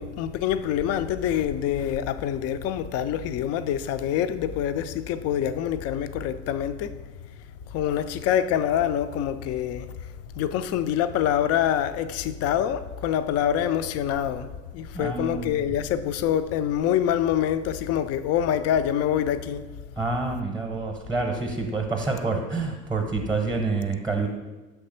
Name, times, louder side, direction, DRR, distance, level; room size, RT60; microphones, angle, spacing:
voice 1, 0.0-6.9 7.7-9.9 10.3-19.6, left 10 dB, 40° left, 0.4 m, -25 dB
voice 2, 14.9-15.7 20.0-24.3, right 3 dB, 5° right, 0.8 m, -28 dB
5.9 x 3.4 x 5.6 m
hypercardioid pair, 80°, 38 cm